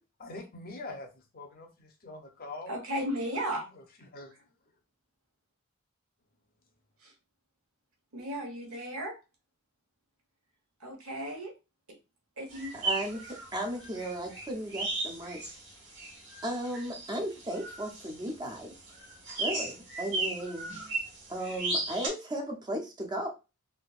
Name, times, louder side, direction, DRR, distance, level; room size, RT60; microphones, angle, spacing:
voice 1, 0.2-1.1 1.3-2.8 3.7-4.3, left 2 dB, 45° left, 0.7 m, -44 dB
voice 2, 2.7-3.7 7.0-7.1 8.1-9.2 10.8-11.5 12.4-12.7, equal, 80° right, 1.2 m, -35 dB
sound 1, 12.5-22.1, right 2 dB, 60° right, 1.5 m, -36 dB
voice 3, 12.7-15.4 16.4-18.7 19.4-20.7 21.3-23.3, right 1 dB, 20° right, 0.6 m, -35 dB
3.5 x 2.7 x 2.4 m
head